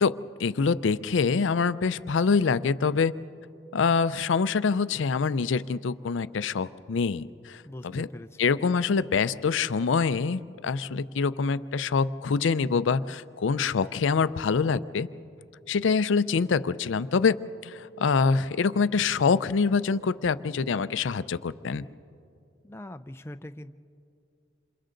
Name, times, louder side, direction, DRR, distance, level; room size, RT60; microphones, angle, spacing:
voice 1, 0.0-3.1 3.7-7.6 7.9-8.1 8.4-15.1 15.7-17.4 17.6-21.8, left 5 dB, 85° left, 15 dB, 0.5 m, -25 dB
voice 2, 7.6-8.5 22.6-23.7, left 1 dB, 15° left, 9 dB, 0.4 m, -42 dB
28.5 x 27.5 x 3.9 m, 2.5 s
head